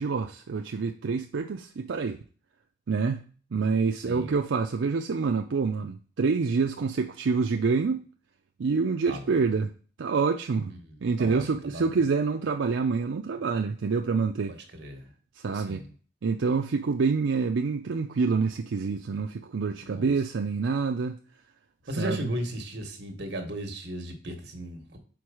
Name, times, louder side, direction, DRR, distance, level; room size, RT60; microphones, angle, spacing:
voice 1, 0.0-2.2 2.9-3.2 3.5-8.0 8.6-9.7 10.0-10.7 11.0-14.6 15.4-15.9 16.2-21.2 22.0-22.3, right 4 dB, 85° right, 0.5 m, -27 dB
voice 2, 4.1-4.4 9.1-9.2 10.7-10.8 11.2-12.0 14.7-15.1 15.5-15.9 19.8-20.1 21.9-25.0, equal, 65° right, 1.3 m, -36 dB
4.6 x 4.4 x 4.8 m
head